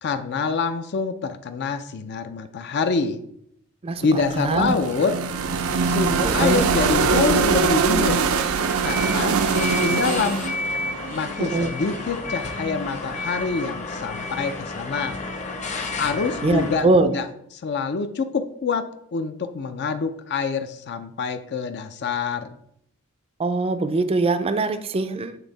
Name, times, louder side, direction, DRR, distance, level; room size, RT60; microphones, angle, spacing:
voice 1, 0.0-3.2 4.0-5.1 5.8-8.3 8.8-10.5 11.1-15.2 16.0-17.3 17.5-18.9 19.1-22.5, left 4 dB, 55° left, 9 dB, 0.4 m, -26 dB
voice 2, 3.8-4.8 6.2-6.7 11.4-11.7 16.4-17.1 23.4-25.4, right 3 dB, 30° right, 10 dB, 0.4 m, -22 dB
sound 1, 4.1-12.1, right 5 dB, 85° right, 0.5 m, -23 dB
sound 2, 8.8-16.8, left 2 dB, 35° left, 0.9 m, -31 dB
8.3 x 3.5 x 4.0 m, 0.72 s
head